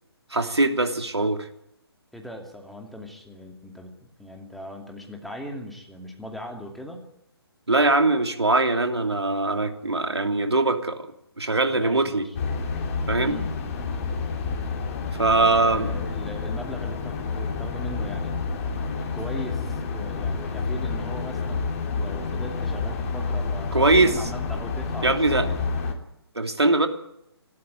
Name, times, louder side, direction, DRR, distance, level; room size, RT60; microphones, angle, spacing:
voice 1, 0.3-1.5 7.7-11.1 11.4-12.3 13.1-13.4 15.2-15.9 23.7-24.1 25.0-25.5 26.3-26.9, right 2 dB, 80° right, 5 dB, 2.9 m, -21 dB
voice 2, 2.1-7.1 11.7-12.4 13.2-13.5 15.3-18.4 19.1-25.7, left 1 dB, ahead, 1 dB, 2.7 m, -39 dB
sound 1, 12.3-25.9, left 4 dB, 35° left, 3.4 m, -29 dB
25.5 x 13.5 x 9.2 m, 0.80 s
figure-of-eight pair, 135°, 14 cm